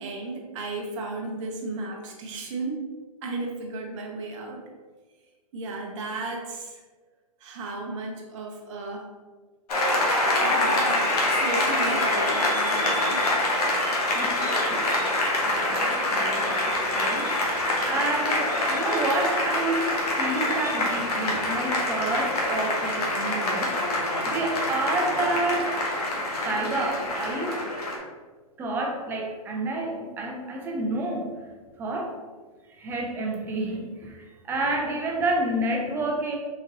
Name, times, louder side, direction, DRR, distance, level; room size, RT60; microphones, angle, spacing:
voice 1, 0.0-2.9 3.2-4.6 5.5-6.8 7.4-9.1 10.4-13.2, right 3 dB, 50° right, 0 dB, 0.6 m, -34 dB
Applause, 9.7-28.0, left 1 dB, 75° left, 1.0 m, -25 dB
voice 2, 14.7-15.0 15.4-17.3 17.8-23.7 24.2-25.7 26.4-27.6 28.6-31.3 31.8-32.1 32.8-34.2 34.5-36.4, right 2 dB, 10° right, 0 dB, 0.4 m, -29 dB
4.0 x 2.8 x 2.6 m, 1.4 s
hypercardioid pair, 140°, 20 cm